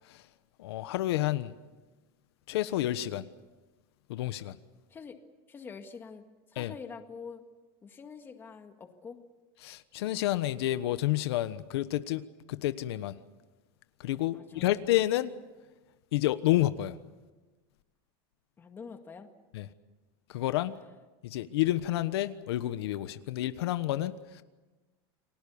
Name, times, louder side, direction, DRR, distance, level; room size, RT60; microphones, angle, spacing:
voice 1, 0.6-1.5 2.5-3.3 4.1-4.6 6.6-6.7 9.6-12.2 12.5-13.2 14.0-15.4 16.1-17.0 19.5-19.7 20.3-20.8 21.2-24.4, left 14 dB, 85° left, 1.2 m, -29 dB
voice 2, 5.5-7.5 7.8-9.2 14.3-14.9 18.6-19.3 20.7-20.8, left 5 dB, 15° left, 1.9 m, -46 dB
30.0 x 20.5 x 7.1 m
supercardioid pair, 165°, 13 cm